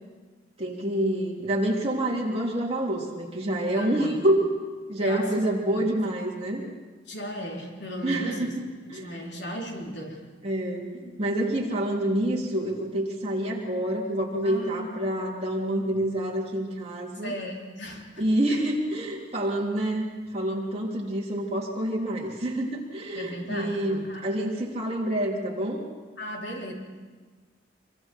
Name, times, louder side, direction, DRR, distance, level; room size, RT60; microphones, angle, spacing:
voice 1, 0.6-4.5 4.9-6.6 8.0-8.5 8.9-9.1 10.4-17.3 18.2-20.1 20.3-25.8, right 1 dB, 35° right, -3 dB, 3.6 m, -27 dB
voice 2, 3.7-4.3 5.0-5.9 7.1-8.5 8.9-10.3 14.4-15.0 17.2-18.6 23.1-24.3 26.2-26.7, equal, 65° left, -1 dB, 4.0 m, -36 dB
26.5 x 24.0 x 4.7 m, 1.4 s
head